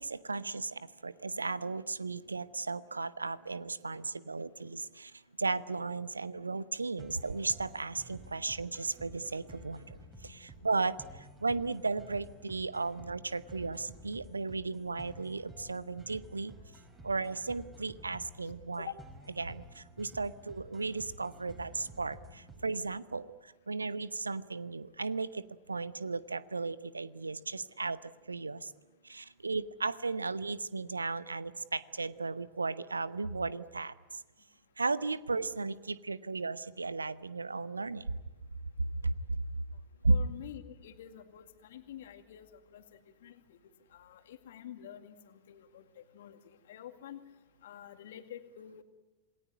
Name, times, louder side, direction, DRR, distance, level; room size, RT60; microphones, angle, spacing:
voice 1, 0.0-5.1 5.4-10.0 10.2-16.5 17.0-18.9 19.4-25.4 25.7-28.7 29.0-33.9 34.8-38.2 39.0-39.4 40.0-40.1, right 3 dB, 80° right, 18 dB, 0.9 m, -35 dB
sound 1, 7.0-23.0, right 1 dB, 15° right, 5.4 m, -52 dB
voice 2, 40.1-43.6 43.9-47.2 47.6-48.8, left 10 dB, 60° left, 8 dB, 2.1 m, -48 dB
27.5 x 19.5 x 9.6 m, 1.2 s
figure-of-eight pair, 90°, 0 cm